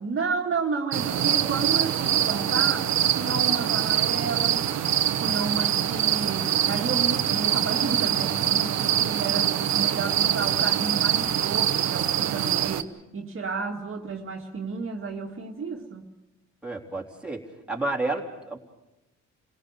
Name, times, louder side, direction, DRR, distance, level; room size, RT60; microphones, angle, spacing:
voice 1, 0.0-4.7 5.2-16.0, right 4 dB, 45° right, 0 dB, 2.1 m, -31 dB
sound 1, 0.9-12.8, right 10 dB, 65° right, 1.1 m, -24 dB
voice 2, 16.6-17.4 17.7-18.6, right 2 dB, 5° right, -1 dB, 3.6 m, -30 dB
28.0 x 17.5 x 6.6 m, 0.93 s
cardioid pair, 90°, 30 cm